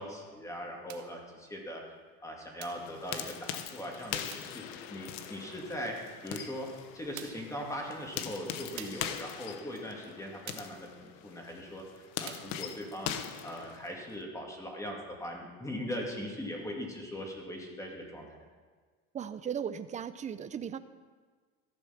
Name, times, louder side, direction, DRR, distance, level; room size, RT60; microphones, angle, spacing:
voice 1, 0.0-1.9 2.2-6.0 6.2-6.7 6.9-13.2 13.4-18.4, equal, 10° left, 0 dB, 2.5 m, -40 dB
sound 1, 0.9-1.2 2.6-2.9 4.3-4.6 6.4-6.5 7.2-7.5 8.8-9.1 10.5-10.8 12.3-12.6, right 11 dB, 65° right, 1.1 m, -47 dB
sound 2, 2.7-14.2, left 9 dB, 80° left, 1.0 m, -42 dB
voice 2, 19.1-20.8, right 8 dB, 25° right, 12 dB, 0.6 m, -37 dB
14.5 x 6.9 x 6.0 m, 1.5 s
supercardioid pair, 115°, 30 cm